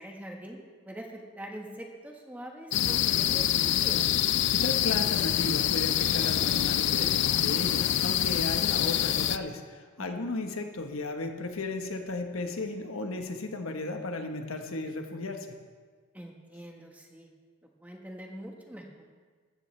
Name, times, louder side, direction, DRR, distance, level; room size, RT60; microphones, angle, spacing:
voice 1, 0.0-4.1 16.1-17.3 17.8-19.0, right 1 dB, 5° right, 1 dB, 1.3 m, -43 dB
sound 1, 2.7-9.4, left 11 dB, 55° left, 0.3 m, -26 dB
voice 2, 4.5-15.6, left 2 dB, 70° left, 5 dB, 1.2 m, -35 dB
15.0 x 14.0 x 3.3 m, 1.5 s
head